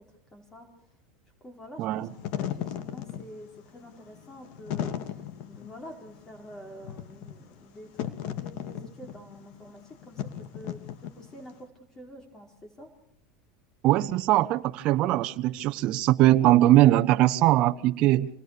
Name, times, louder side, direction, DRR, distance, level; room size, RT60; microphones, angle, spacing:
voice 1, 0.3-0.7 1.4-5.1 5.5-11.7 11.9-12.9, equal, 20° left, 4 dB, 4.8 m, -47 dB
voice 2, 1.8-2.1 13.8-18.3, right 15 dB, 45° right, 8 dB, 1.0 m, -21 dB
Wind / Fire, 2.0-11.5, left 10 dB, 55° left, 2.1 m, -36 dB
27.0 x 20.0 x 6.8 m, 0.65 s
supercardioid pair, 130°, 2 cm